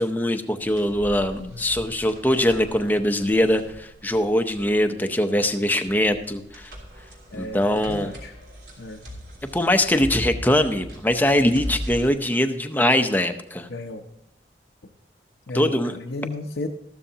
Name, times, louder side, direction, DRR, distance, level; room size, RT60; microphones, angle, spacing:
voice 1, 0.0-6.7 7.3-8.1 9.5-13.7 15.5-15.9, left 1 dB, 10° left, 7 dB, 0.7 m, -22 dB
sound 1, 0.6-12.1, equal, 80° right, 3.2 m, -39 dB
voice 2, 1.4-1.7 7.3-8.3 8.8-9.0 13.7-14.0 15.5-16.7, left 2 dB, 80° left, 1 dB, 0.8 m, -34 dB
14.0 x 12.5 x 2.9 m, 0.80 s
head